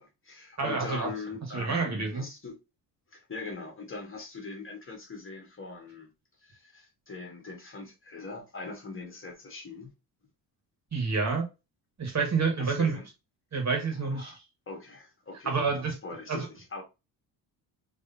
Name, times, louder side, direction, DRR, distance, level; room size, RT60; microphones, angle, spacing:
voice 1, 0.0-2.6 3.1-6.1 6.4-9.9 12.6-13.1 14.0-14.4 14.7-16.8, left 3 dB, 30° left, 1.6 m, -42 dB
voice 2, 0.6-1.1 1.5-2.3 10.9-11.5 12.0-13.0 13.5-14.4 15.4-15.9 16.3-16.5, right 4 dB, 40° right, 1.8 m, -28 dB
3.6 x 3.1 x 2.8 m
cardioid pair, 95°, 40 cm